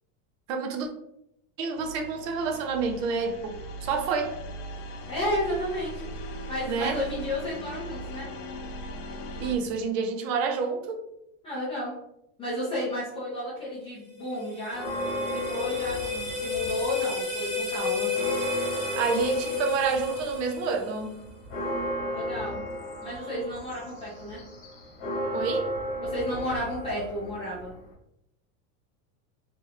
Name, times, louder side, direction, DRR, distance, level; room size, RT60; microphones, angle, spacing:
voice 1, 0.5-0.9 1.6-4.4 6.7-7.0 9.4-11.1 17.1-17.2 17.8-17.9 18.9-21.2 25.3-25.7, right 5 dB, 60° right, 5 dB, 0.6 m, -28 dB
sound 1, 1.8-9.6, equal, 85° left, 0.7 m, -39 dB
voice 2, 5.0-6.0 6.5-8.3 11.4-11.9 12.4-14.9 15.5-18.1 22.1-22.6 23.0-24.4 26.0-27.7, equal, 15° left, -8 dB, 0.4 m, -32 dB
sound 2, 14.1-21.2, left 5 dB, 5° right, 0.8 m, -32 dB
Church bell, 14.7-17.1 17.4-17.5 17.9-27.9, equal, 40° left, 1.2 m, -35 dB
2.9 x 2.2 x 3.4 m, 0.79 s
supercardioid pair, 165°, 44 cm